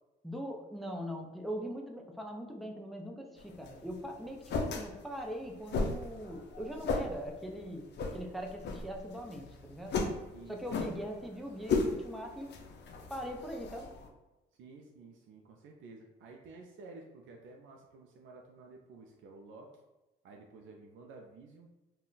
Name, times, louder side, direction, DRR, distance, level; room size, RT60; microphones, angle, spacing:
voice 1, 0.2-7.8 8.1-9.9 10.5-12.5 13.1-13.9, equal, ahead, 1 dB, 0.4 m, -41 dB
sound 1, 3.4-14.1, left 3 dB, 60° left, 0.5 m, -37 dB
voice 2, 10.3-10.9 14.6-19.7 20.2-21.7, right 3 dB, 80° right, 1 dB, 0.4 m, -52 dB
2.4 x 2.2 x 3.7 m, 1.0 s
cardioid pair, 90°, 20 cm